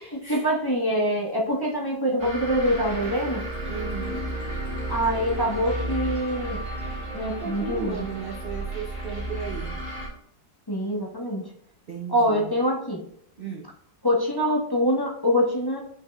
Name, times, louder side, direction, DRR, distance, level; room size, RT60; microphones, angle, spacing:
voice 1, 0.0-3.4 4.9-6.6 7.1-8.1 10.7-11.5 12.1-13.0 14.0-15.8, equal, 15° left, -3 dB, 0.9 m, -25 dB
sound 1, 2.2-10.1, right 1 dB, 25° right, 1.9 m, -32 dB
voice 2, 3.7-4.2 7.4-9.8 11.9-12.5 13.4-13.7, right 5 dB, 65° right, 1 dB, 0.5 m, -35 dB
9.2 x 5.7 x 2.3 m, 0.66 s
omnidirectional pair, 1.9 m